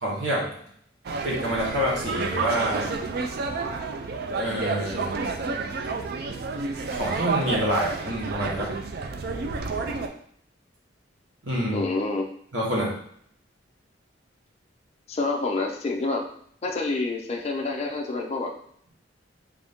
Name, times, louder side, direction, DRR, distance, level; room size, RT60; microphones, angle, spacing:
voice 1, 0.0-0.5 1.2-2.9 4.3-5.2 6.9-8.7 11.4-11.8 12.5-12.9, equal, 85° right, -4 dB, 1.3 m, -27 dB
crowd at the fence during a race, 1.1-10.1, right 4 dB, 55° right, 0.4 m, -30 dB
voice 2, 11.7-12.3 15.1-16.2 16.6-18.5, left 3 dB, 35° left, 1 dB, 0.4 m, -27 dB
3.5 x 2.6 x 3.5 m, 0.65 s
head